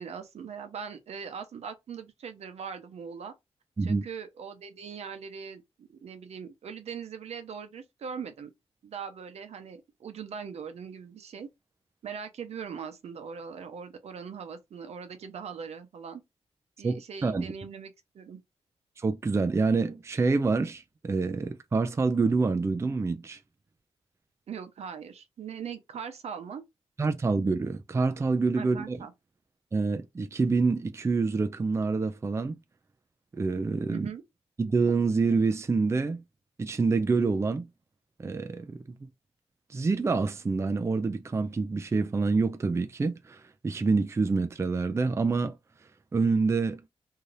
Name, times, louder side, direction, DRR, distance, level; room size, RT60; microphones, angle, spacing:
voice 1, 0.0-3.3 3.8-8.5 8.8-11.5 12.0-16.2 16.8-18.4 24.5-26.6 28.6-29.1 33.9-34.2, right 6 dB, 75° right, 0.7 m, -41 dB
voice 2, 16.8-17.4 19.0-23.4 27.0-29.0 29.7-32.6 33.3-34.1 34.6-36.2 36.6-37.7 38.2-39.0 39.7-45.6 46.1-46.8, right 4 dB, 25° right, 0.4 m, -27 dB
2.8 x 2.4 x 3.2 m
cardioid pair, 85°, 11 cm